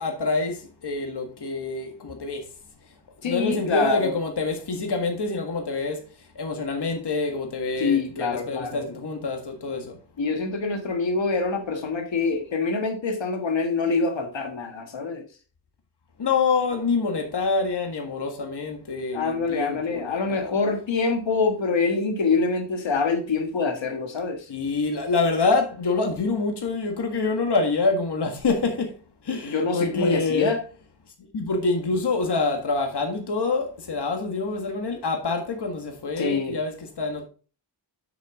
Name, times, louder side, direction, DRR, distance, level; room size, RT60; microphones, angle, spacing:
voice 1, 0.0-2.5 3.2-6.0 6.3-10.0 16.2-20.6 24.5-28.9 29.2-30.5 31.2-37.3, left 3 dB, 65° left, 1.7 m, -26 dB
voice 2, 3.2-4.2 7.8-8.9 10.2-15.2 19.1-24.5 29.4-30.6 36.2-36.6, left 4 dB, 85° left, 1.6 m, -25 dB
8.0 x 6.5 x 3.6 m
wide cardioid pair, 100°, 44 cm